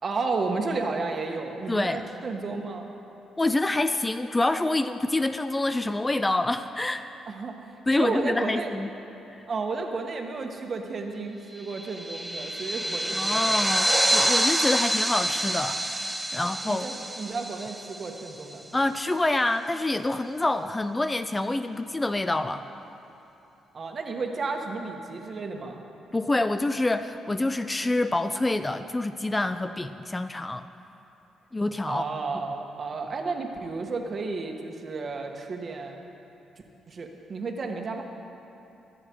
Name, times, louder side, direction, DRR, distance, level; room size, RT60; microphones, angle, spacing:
voice 1, 0.0-2.9 7.3-7.6 7.9-8.7 9.5-13.5 16.4-18.6 23.7-25.8 31.9-36.0 36.9-38.0, right 3 dB, 45° right, 3 dB, 1.5 m, -32 dB
voice 2, 1.7-2.0 3.4-7.0 7.9-8.9 9.3-9.4 13.1-16.9 18.7-22.7 26.1-30.7 31.5-32.0, left 2 dB, 15° left, 10 dB, 0.4 m, -27 dB
sound 1, 11.7-18.5, right 1 dB, 15° right, 1.3 m, -27 dB
23.5 x 8.8 x 4.7 m, 2.9 s
cardioid pair, 90°, 0 cm